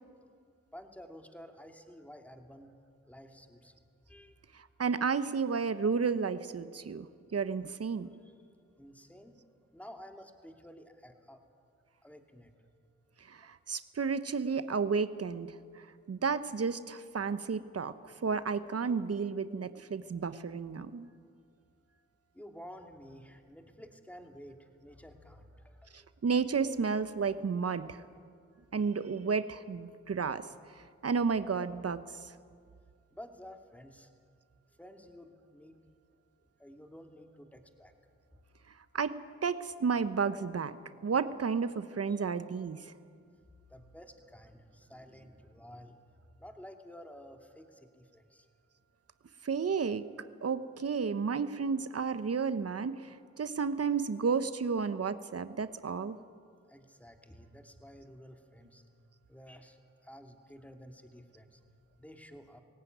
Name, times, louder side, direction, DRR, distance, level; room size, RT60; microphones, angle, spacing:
voice 1, 0.7-2.7 3.1-3.7 4.1-4.5 4.9-5.0 8.2-8.4 8.8-9.4 9.7-11.4 12.0-12.5 22.3-26.1 33.1-34.1 34.8-35.8 36.6-37.9 38.3-38.4 42.1-42.4 43.2-43.3 43.7-46.0 46.4-48.5 56.7-58.8 59.3-61.6 62.0-62.6, equal, 5° left, 4 dB, 2.7 m, -52 dB
voice 2, 4.5-7.1 7.3-8.1 13.3-15.5 16.1-17.9 18.2-21.1 25.9-28.0 28.7-30.4 31.0-32.0 38.9-39.1 39.4-40.8 41.0-42.8 49.4-50.0 50.4-56.2, right 5 dB, 50° right, 12 dB, 1.1 m, -32 dB
20.5 x 17.5 x 9.3 m, 2.1 s
cardioid pair, 50°, 31 cm